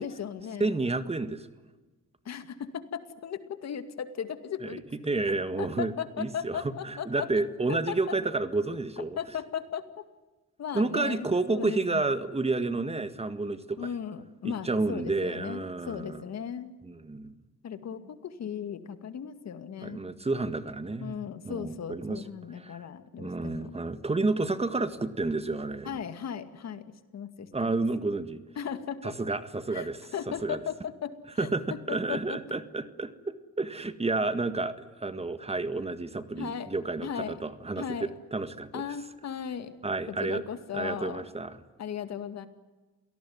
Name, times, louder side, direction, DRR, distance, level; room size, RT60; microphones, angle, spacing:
voice 1, 0.0-0.7 2.3-4.8 5.6-7.3 7.7-8.0 9.0-9.8 10.6-12.0 13.8-16.7 17.6-20.0 21.0-23.7 25.8-26.8 27.1-27.7 28.6-29.1 29.7-29.9 30.1-31.1 31.4-31.5 31.9-32.4 36.4-36.7 37.0-37.3 37.8-38.1 38.7-39.7 40.1-41.2 41.8-42.5, left 8 dB, 60° left, 10 dB, 2.3 m, -36 dB
voice 2, 0.6-1.5 4.6-4.8 5.0-9.2 10.7-13.9 14.4-16.2 16.8-17.4 19.8-21.2 21.4-22.2 22.6-22.8 23.2-26.0 27.5-28.4 29.0-30.0 30.3-30.6 31.4-38.8 39.8-40.4 40.7-41.6, right 3 dB, 20° right, 11 dB, 1.8 m, -30 dB
28.5 x 18.5 x 9.6 m, 1.2 s
cardioid pair, 90°, 30 cm